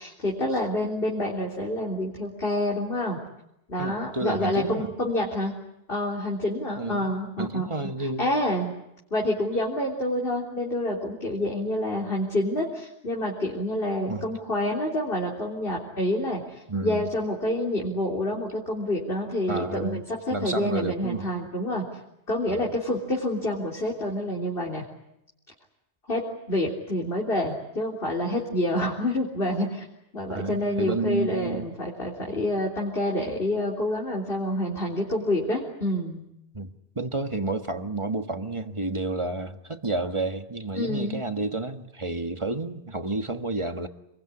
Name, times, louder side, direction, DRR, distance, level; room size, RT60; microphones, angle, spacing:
voice 1, 0.0-3.2 3.7-5.5 5.9-7.7 8.2-8.7 9.1-21.8 22.3-24.8 26.1-26.2 26.5-29.9 30.1-36.2 40.7-41.2, left 1 dB, 55° left, -2 dB, 3.9 m, -28 dB
voice 2, 3.8-4.9 6.8-7.1 7.4-8.3 14.1-14.3 16.7-17.1 19.5-20.0 20.3-21.3 22.5-22.7 30.3-31.7 36.5-43.9, right 2 dB, 25° right, 7 dB, 1.6 m, -30 dB
27.0 x 22.5 x 9.9 m, 0.84 s
omnidirectional pair, 1.2 m